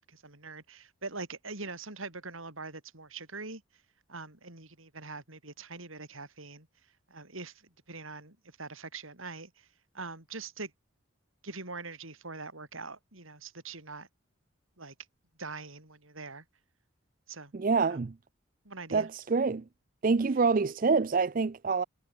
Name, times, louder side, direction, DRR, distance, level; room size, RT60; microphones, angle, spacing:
voice 1, 0.0-3.6 4.1-6.7 7.1-7.5 7.9-9.7 9.9-10.7 11.4-14.1 14.8-14.9 15.4-16.4 17.3-17.5 17.8-18.0 18.7-19.1, right 3 dB, 80° right, 5.4 m, -43 dB
voice 2, 17.5-18.1 18.9-19.6 20.0-21.8, right 4 dB, 40° right, 0.4 m, -26 dB
head